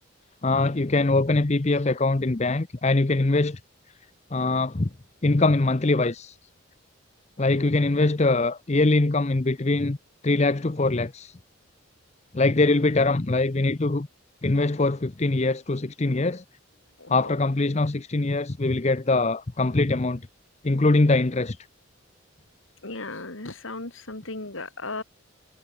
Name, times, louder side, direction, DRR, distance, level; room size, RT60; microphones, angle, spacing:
voice 1, 0.4-3.6 4.3-4.9 5.2-6.4 7.4-10.0 10.2-11.4 12.3-14.1 14.4-16.4 17.1-20.2 20.6-21.6, left 2 dB, 30° left, 0.7 m, -22 dB
voice 2, 17.0-17.4 22.8-25.0, left 3 dB, 65° left, 2.8 m, -36 dB
head